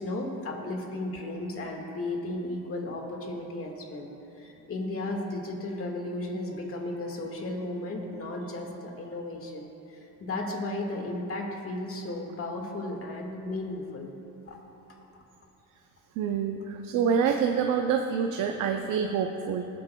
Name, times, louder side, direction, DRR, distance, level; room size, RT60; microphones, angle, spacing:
voice 1, 0.0-4.1 4.3-14.1 14.4-14.6 14.9-15.0, left 2 dB, 50° left, 1 dB, 1.7 m, -34 dB
voice 2, 16.2-19.7, right 7 dB, 90° right, 4 dB, 0.6 m, -27 dB
19.0 x 8.4 x 2.2 m, 2.9 s
cardioid pair, 90°, 30 cm